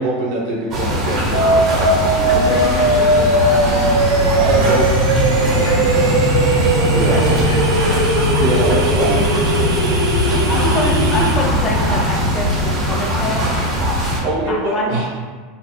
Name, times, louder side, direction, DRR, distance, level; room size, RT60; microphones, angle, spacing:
voice 1, 0.0-2.6 4.4-5.0 6.9-7.2 8.3-9.2 14.1-15.2, right 2 dB, 60° right, -4 dB, 1.0 m, -23 dB
sound 1, 0.7-14.2, equal, 40° right, 1.5 m, -20 dB
sound 2, 1.3-11.3, right 2 dB, 85° right, 0.6 m, -19 dB
voice 2, 2.3-3.9 5.5-6.4 7.1-8.3 8.8-10.0, left 2 dB, 80° left, -3 dB, 1.1 m, -30 dB
sound 3, 3.6-12.7, left 1 dB, ahead, 1.4 m, -22 dB
voice 3, 10.5-13.5 14.5-15.0, left 2 dB, 30° left, -1 dB, 0.8 m, -25 dB
4.2 x 3.6 x 2.3 m, 1.5 s
hypercardioid pair, 105°, 0 cm